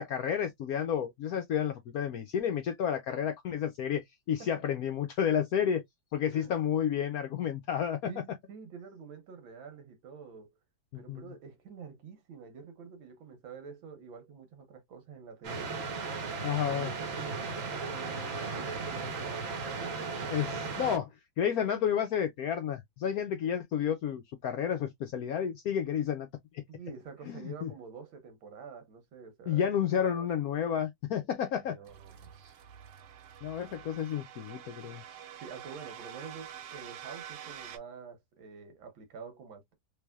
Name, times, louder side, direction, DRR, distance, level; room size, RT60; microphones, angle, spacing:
voice 1, 0.0-5.8 6.1-8.1 10.9-11.3 16.4-16.9 20.3-21.1 21.4-26.3 27.3-27.7 29.5-31.8 33.4-35.0, left 8 dB, 75° left, 0.8 m, -31 dB
voice 2, 4.4-4.7 6.3-6.5 8.0-10.5 10.9-15.8 16.7-20.4 26.7-29.7 30.0-30.3 31.7-32.6 35.4-39.7, right 6 dB, 90° right, 1.8 m, -47 dB
sound 1, 15.4-21.0, right 4 dB, 50° right, 1.1 m, -36 dB
sound 2, 31.9-37.8, right 9 dB, 75° right, 1.3 m, -47 dB
3.3 x 3.3 x 2.2 m
omnidirectional pair, 2.1 m